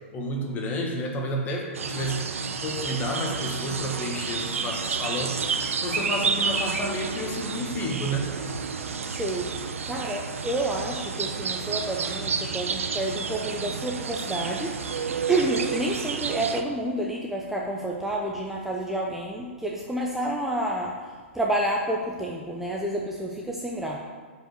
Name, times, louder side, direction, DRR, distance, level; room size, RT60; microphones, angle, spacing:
voice 1, 0.1-2.3 2.6-5.4 5.8-8.3, equal, 25° left, 1 dB, 1.6 m, -30 dB
sound 1, 1.7-16.6, right 5 dB, 90° right, 0.8 m, -30 dB
voice 2, 8.8-9.6 9.9-15.0 15.3-24.0, right 1 dB, 5° right, -2 dB, 0.8 m, -29 dB
7.3 x 5.4 x 6.6 m, 1.5 s
hypercardioid pair, 135°, 7 cm